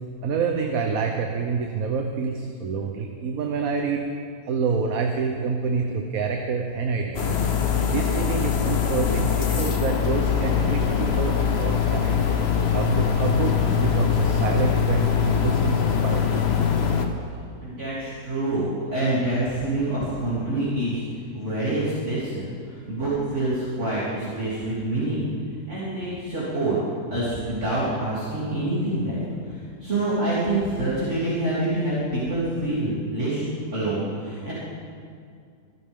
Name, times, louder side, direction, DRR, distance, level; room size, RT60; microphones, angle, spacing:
voice 1, 0.2-4.1 4.5-7.4 7.9-12.2 12.7-16.6, right 5 dB, 65° right, 2 dB, 1.4 m, -27 dB
sound 1, 7.1-17.1, left 7 dB, 45° left, 1.2 m, -22 dB
voice 2, 17.6-21.0 21.3-26.8 27.1-29.5 29.8-33.5 33.7-34.5, right 1 dB, 50° right, -11 dB, 3.6 m, -26 dB
23.5 x 12.5 x 3.7 m, 2.3 s
omnidirectional pair, 1.6 m